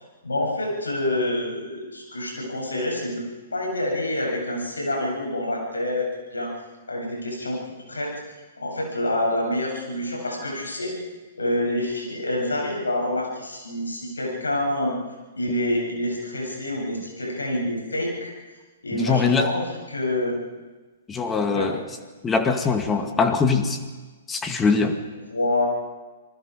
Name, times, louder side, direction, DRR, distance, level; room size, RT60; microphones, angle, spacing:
voice 1, 0.2-3.2 3.5-6.5 6.9-7.6 7.9-8.1 8.6-11.0 11.4-15.0 15.3-18.3 18.8-20.4 21.5-21.7 25.3-25.7, left 1 dB, 80° left, -1 dB, 7.6 m, -27 dB
voice 2, 18.9-19.5 21.1-21.8 22.2-23.8 24.3-25.0, left 4 dB, 15° left, 7 dB, 2.0 m, -22 dB
27.5 x 20.0 x 4.9 m, 1.3 s
figure-of-eight pair, 120°, 0 cm